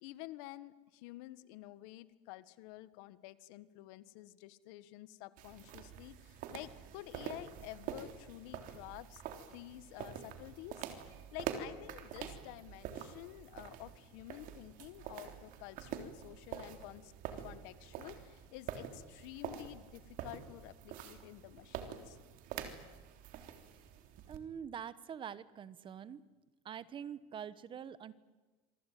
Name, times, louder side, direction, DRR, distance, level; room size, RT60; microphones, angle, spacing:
voice 1, 0.0-9.2 9.5-22.2, left 17 dB, 75° left, 15 dB, 1.6 m, -50 dB
sound 1, 5.4-24.4, right 9 dB, 55° right, 3.6 m, -46 dB
voice 2, 24.3-26.2 26.6-28.1, right 8 dB, 30° right, 17 dB, 1.2 m, -45 dB
27.0 x 23.5 x 9.4 m, 1.3 s
cardioid pair, 145°, 17 cm